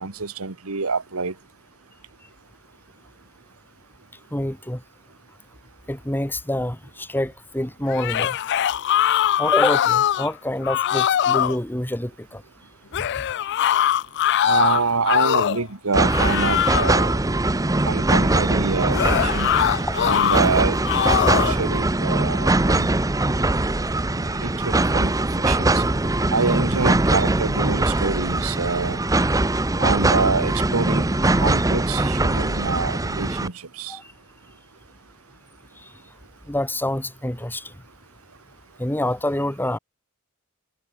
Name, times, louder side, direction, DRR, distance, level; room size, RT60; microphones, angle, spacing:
voice 1, 0.0-1.3 14.4-17.2 17.8-19.5 20.0-20.8 21.2-22.9 24.2-25.1 25.4-25.8 26.3-29.0 29.8-31.1 31.4-34.0, right 4 dB, 85° right, 1.5 m, -26 dB
voice 2, 4.3-4.8 5.9-8.4 9.4-12.4 12.9-13.2 33.9-34.0 36.5-37.7 38.8-39.8, left 1 dB, 10° left, 1.9 m, -26 dB
sound 1, 7.9-10.3 10.6-11.6 12.9-15.7 16.1-17.0 18.9-20.4 20.8-21.6, left 10 dB, 55° left, 0.4 m, -21 dB
sound 2, 15.9-33.5, right 2 dB, 15° right, 0.8 m, -21 dB
head